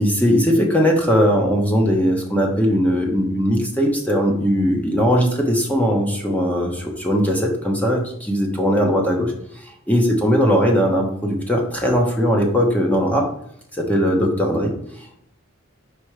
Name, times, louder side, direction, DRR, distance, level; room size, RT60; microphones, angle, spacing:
voice 1, 0.0-13.3 13.7-15.2, equal, 5° left, 0 dB, 0.9 m, -19 dB
5.0 x 4.4 x 4.9 m, 0.72 s
head